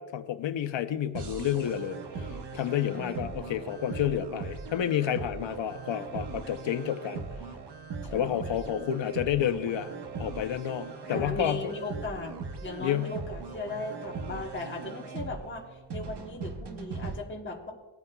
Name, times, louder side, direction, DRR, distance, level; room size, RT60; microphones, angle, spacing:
voice 1, 0.0-2.0 2.5-7.2 8.1-9.9 10.2-11.7 12.8-13.1, left 10 dB, 65° left, 10 dB, 0.7 m, -30 dB
sound 1, 1.1-17.2, right 4 dB, 55° right, 1.0 m, -39 dB
voice 2, 2.9-3.6 8.0-8.8 11.1-12.3 12.6-17.7, left 2 dB, 25° left, -1 dB, 1.1 m, -38 dB
18.5 x 9.3 x 2.3 m, 1.3 s
wide cardioid pair, 150°, 48 cm